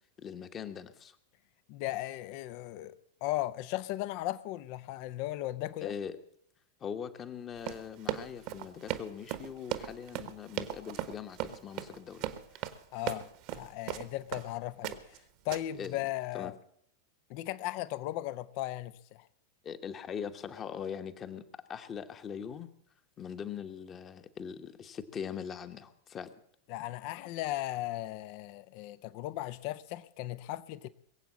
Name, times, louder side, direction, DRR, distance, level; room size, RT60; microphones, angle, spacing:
voice 1, 0.2-1.2 5.8-6.2 6.8-12.7 15.8-16.0 16.3-16.5 19.6-22.7 23.2-26.3, left 7 dB, 25° left, 1.2 m, -41 dB
voice 2, 1.7-5.9 12.9-15.0 15.4-16.5 17.3-19.3 26.7-30.9, left 15 dB, 45° left, 0.6 m, -37 dB
Run, 7.6-14.5 14.8-15.2 15.5-15.9, right 13 dB, 45° right, 1.2 m, -37 dB
21.5 x 8.0 x 7.4 m
figure-of-eight pair, 90°, 0 cm